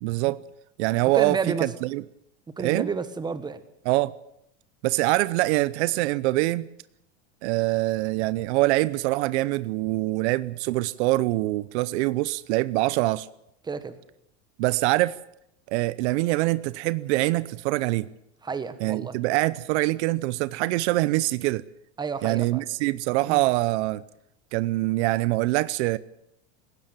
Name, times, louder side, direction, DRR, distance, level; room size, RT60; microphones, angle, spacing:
voice 1, 0.0-0.4 0.8-2.0 2.6-2.9 3.8-4.1 4.8-6.7 7.4-13.3 14.6-15.2 15.7-18.1 18.8-21.6 22.2-24.0 24.5-26.0, right 19 dB, 65° right, 0.8 m, -24 dB
voice 2, 1.1-1.7 2.6-3.6 13.6-13.9 18.4-19.1 22.0-22.6 23.3-23.4, right 5 dB, 10° right, 1.3 m, -30 dB
19.0 x 16.5 x 8.9 m
supercardioid pair, 150°, 36 cm